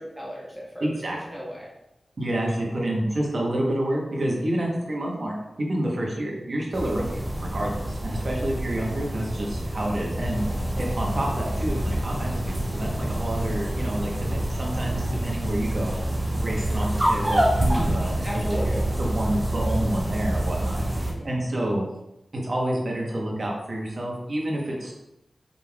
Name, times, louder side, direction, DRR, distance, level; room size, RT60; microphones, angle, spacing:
voice 1, 0.0-1.7 2.6-2.7 8.1-8.5 14.5-14.9 18.2-18.8 21.1-21.3, equal, ahead, -5 dB, 1.2 m, -37 dB
voice 2, 0.8-1.2 2.2-5.4 5.7-7.1 7.4-15.9 16.4-20.8 21.2-21.8 22.3-24.9, right 1 dB, 50° right, -2 dB, 1.1 m, -28 dB
sound 1, 6.7-21.1, right 1 dB, 20° right, 0.8 m, -27 dB
5.1 x 3.6 x 2.4 m, 0.90 s
wide cardioid pair, 115°, 0 cm